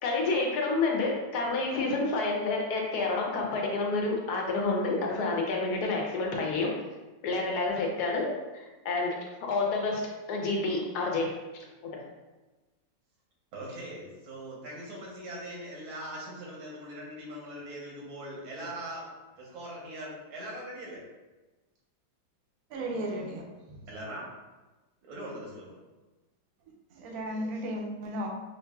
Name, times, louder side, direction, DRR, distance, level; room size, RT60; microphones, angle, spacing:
voice 1, 0.0-6.7 7.2-8.3 8.5-9.1 9.5-10.0 10.3-11.6 11.9-12.0, left 3 dB, 70° left, 0 dB, 1.0 m, -29 dB
voice 2, 13.5-19.1 19.4-21.0 23.8-24.2 25.0-25.8, right 1 dB, 80° right, -4 dB, 1.9 m, -41 dB
voice 3, 22.7-23.9 26.9-28.3, right 1 dB, 65° right, 0 dB, 0.9 m, -35 dB
5.7 x 2.7 x 2.2 m, 1.2 s
omnidirectional pair, 2.1 m